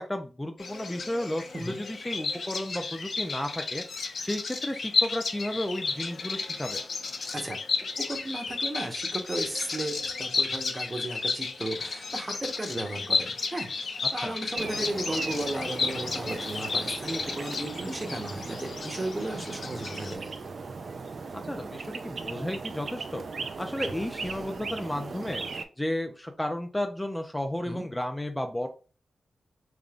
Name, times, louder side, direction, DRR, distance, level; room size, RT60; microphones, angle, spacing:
voice 1, 0.0-3.8 4.2-6.8 14.2-14.3 21.3-25.4 25.8-28.7, left 1 dB, 10° left, 4 dB, 0.5 m, -33 dB
Bird vocalization bird call bird song, 0.6-20.1, left 4 dB, 65° left, 0.6 m, -33 dB
voice 2, 8.1-13.7 14.1-20.3 27.6-27.9, right 1 dB, 30° right, 3 dB, 1.1 m, -35 dB
sound 1, 14.5-25.6, right 4 dB, 65° right, 0.4 m, -38 dB
3.7 x 3.5 x 2.4 m, 0.36 s
cardioid pair, 45°, 0 cm